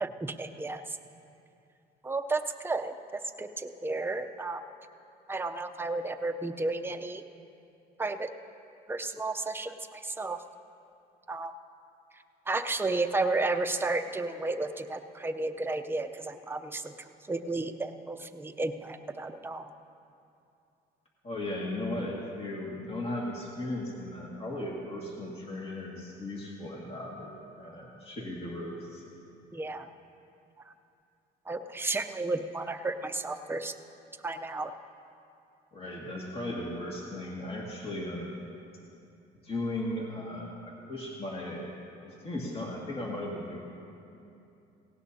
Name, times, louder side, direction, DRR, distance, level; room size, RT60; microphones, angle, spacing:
voice 1, 0.0-1.0 2.0-2.9 3.4-4.6 5.3-7.2 8.0-8.3 8.9-10.4 11.3-11.5 12.5-16.9 17.3-19.7 29.5-29.9 31.5-33.7 34.2-34.7, right 3 dB, 15° right, 6 dB, 0.7 m, -32 dB
voice 2, 21.2-27.3 27.6-29.0 35.7-38.5 39.4-41.6 42.0-43.6, left 1 dB, 35° left, -3 dB, 2.1 m, -36 dB
18.0 x 17.5 x 2.8 m, 2.7 s
cardioid pair, 110°, 17 cm